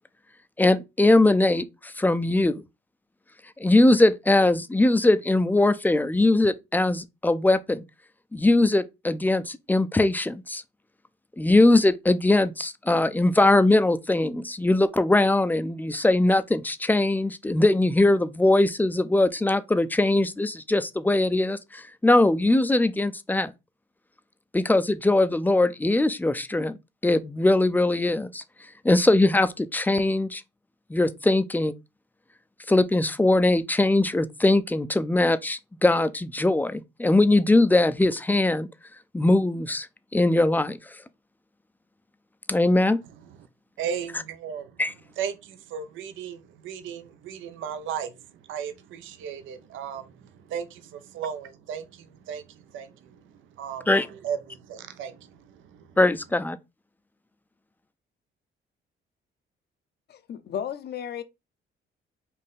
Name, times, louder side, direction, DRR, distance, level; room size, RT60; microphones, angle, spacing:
voice 1, 0.6-2.6 3.6-7.8 8.3-10.6 11.4-23.5 24.5-26.8 27.0-28.4 28.8-30.4 30.9-31.7 32.7-38.7 39.1-39.9 40.1-40.8 42.5-43.0 44.8-44.9 53.9-54.1 56.0-56.6, left 2 dB, 10° left, 0.4 m, -21 dB
voice 2, 43.8-44.8 45.2-56.0, right 8 dB, 75° right, 0.6 m, -36 dB
voice 3, 60.1-61.2, left 9 dB, 55° left, 0.6 m, -34 dB
4.1 x 2.6 x 3.6 m
cardioid pair, 90°, 20 cm